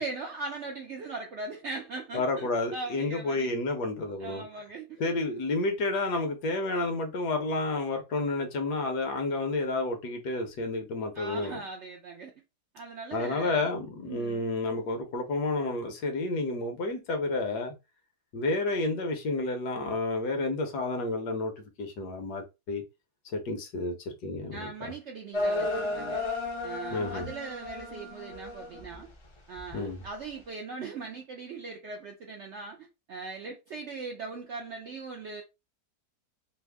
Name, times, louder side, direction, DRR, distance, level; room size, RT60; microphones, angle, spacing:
voice 1, 0.0-3.6 4.2-5.0 11.1-12.3 12.7-13.7 14.0-14.5 24.5-26.2 26.6-29.1 29.5-35.4, right 3 dB, 70° right, 0.6 m, -40 dB
voice 2, 2.1-4.4 5.0-11.6 13.1-17.7 18.3-22.8 23.3-24.9 26.9-27.3 29.7-30.0, left 2 dB, 75° left, 1.4 m, -30 dB
sound 1, 25.3-29.1 29.6-30.0, left 2 dB, 45° left, 0.4 m, -33 dB
3.4 x 2.1 x 3.4 m
omnidirectional pair, 1.7 m